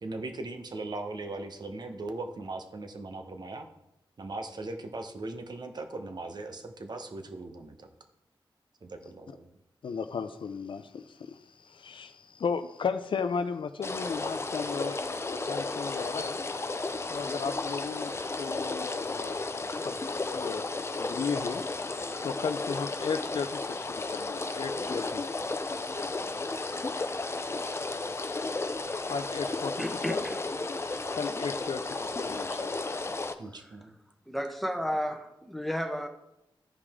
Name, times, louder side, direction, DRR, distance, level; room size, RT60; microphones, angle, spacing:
voice 1, 0.0-3.7 4.2-7.9 8.8-9.5 33.4-33.9, right 2 dB, 50° right, 1.1 m, -39 dB
voice 2, 9.8-16.4 17.1-18.1 18.4-20.6 21.0-21.6 22.2-25.2 29.0-29.7 30.1-30.2 31.1-32.7, left 5 dB, 70° left, 0.5 m, -35 dB
sound 1, 13.8-33.3, left 3 dB, 30° left, 0.6 m, -33 dB
voice 3, 29.8-30.4 33.5-33.8 34.3-36.1, equal, ahead, 1.0 m, -33 dB
14.0 x 5.0 x 3.6 m
wide cardioid pair, 75°, 9 cm